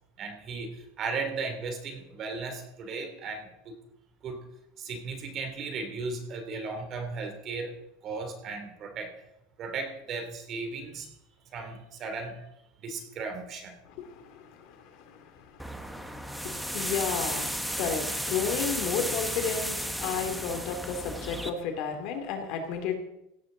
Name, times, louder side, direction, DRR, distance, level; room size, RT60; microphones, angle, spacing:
voice 1, 0.2-3.7 4.2-4.4 4.8-7.7 8.0-9.1 9.6-11.1 11.5-12.4 12.8-13.7, right 4 dB, 35° right, 5 dB, 2.9 m, -36 dB
voice 2, 13.8-23.0, left 6 dB, 55° left, 5 dB, 2.6 m, -33 dB
sound 1, 15.6-21.5, equal, ahead, 1.0 m, -33 dB
16.5 x 13.0 x 3.9 m, 0.86 s
supercardioid pair, 145°, 0 cm